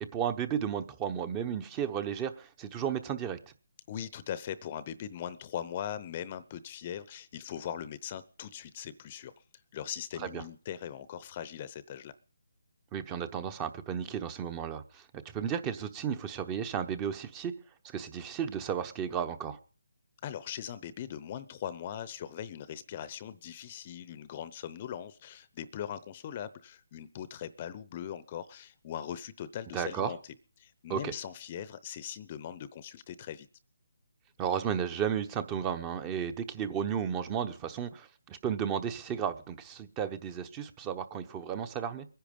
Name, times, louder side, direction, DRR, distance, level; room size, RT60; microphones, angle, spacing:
voice 1, 0.0-3.4 10.2-10.4 12.9-15.0 15.3-17.5 17.8-19.6 29.7-30.1 30.9-31.1 34.4-42.1, right 8 dB, 15° right, 12 dB, 0.9 m, -33 dB
voice 2, 3.9-9.3 9.7-12.1 20.2-30.2 30.6-33.5, left 10 dB, 30° left, 16 dB, 0.8 m, -40 dB
22.0 x 10.5 x 5.3 m, 0.39 s
hypercardioid pair, 160°, 0 cm